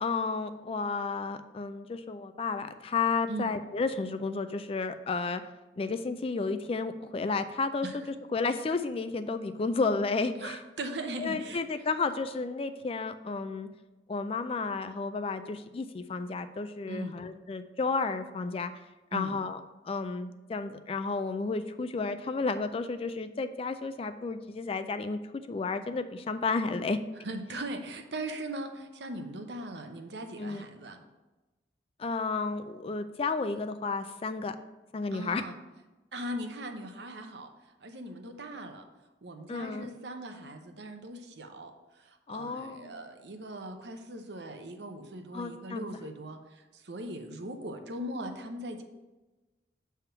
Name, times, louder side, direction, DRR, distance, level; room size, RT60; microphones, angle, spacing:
voice 1, 0.0-5.4 5.8-7.9 8.3-10.6 11.2-13.7 14.1-18.7 19.1-19.6 19.9-25.2 25.5-27.0 30.4-30.6 32.0-34.6 34.9-35.4 39.5-39.9 42.3-43.0 45.3-45.9, left 4 dB, 30° left, 10 dB, 0.3 m, -32 dB
voice 2, 10.4-11.6 16.9-17.2 19.1-19.4 27.2-31.0 35.1-35.6 36.1-37.5 37.8-38.8 39.2-41.7 42.0-48.8, right 1 dB, 70° right, 5 dB, 0.8 m, -39 dB
7.4 x 3.5 x 5.7 m, 1.1 s
head